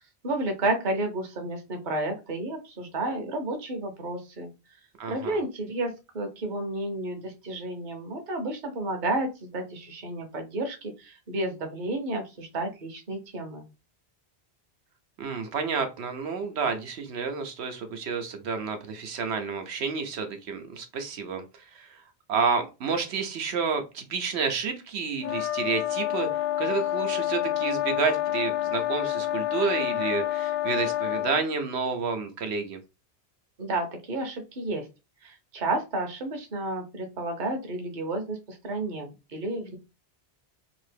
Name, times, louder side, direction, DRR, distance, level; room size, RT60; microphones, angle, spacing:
voice 1, 0.0-4.5 5.1-13.6 33.6-34.9 35.2-39.8, right 2 dB, 50° right, 4 dB, 0.9 m, -31 dB
voice 2, 5.0-5.4 15.2-21.4 21.7-22.0 22.3-32.8, right 5 dB, 90° right, 6 dB, 1.0 m, -30 dB
sound 1, 25.2-31.4, left 13 dB, 70° left, 0.9 m, -28 dB
2.9 x 2.7 x 3.3 m, 0.27 s
omnidirectional pair, 1.1 m